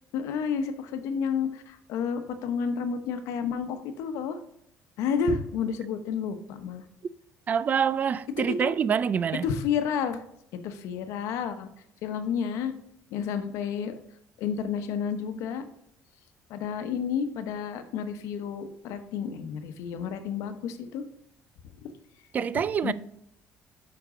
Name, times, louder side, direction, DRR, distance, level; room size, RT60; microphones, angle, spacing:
voice 1, 0.1-4.4 5.0-6.8 8.4-8.7 9.4-10.2 10.5-11.7 12.0-12.7 13.1-13.9 14.4-15.6 16.5-21.0 21.8-21.9 22.8-22.9, left 6 dB, 80° left, 0.9 m, -30 dB
voice 2, 7.5-9.4 22.3-22.9, right 7 dB, 35° right, 0.3 m, -26 dB
8.1 x 5.9 x 3.7 m
cardioid pair, 130°, 5 cm